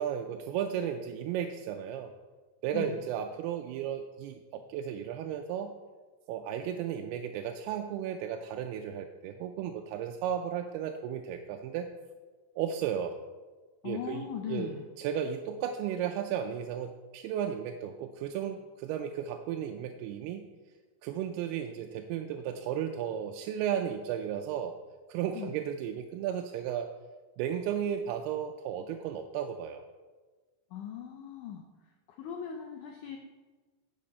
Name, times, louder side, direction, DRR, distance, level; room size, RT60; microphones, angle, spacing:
voice 1, 0.0-2.1 2.6-5.7 6.3-11.9 12.6-13.2 13.8-20.4 21.0-24.8 25.1-26.9 27.4-29.8, right 9 dB, 85° right, 5 dB, 2.5 m, -34 dB
voice 2, 13.8-14.8 25.3-25.6 30.7-31.6 32.1-33.2, left 8 dB, 90° left, 3 dB, 1.7 m, -39 dB
10.5 x 7.5 x 4.2 m, 1.3 s
omnidirectional pair, 4.5 m